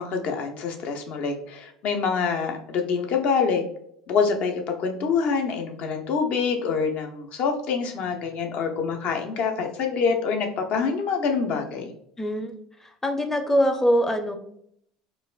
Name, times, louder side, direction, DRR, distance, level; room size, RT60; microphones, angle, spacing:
voice 1, 0.0-3.6 4.1-11.9, left 5 dB, 50° left, 4 dB, 0.6 m, -26 dB
voice 2, 12.2-12.5 13.0-14.4, equal, 15° left, 6 dB, 0.6 m, -22 dB
4.0 x 2.5 x 2.4 m, 0.71 s
figure-of-eight pair, 70°, 3 cm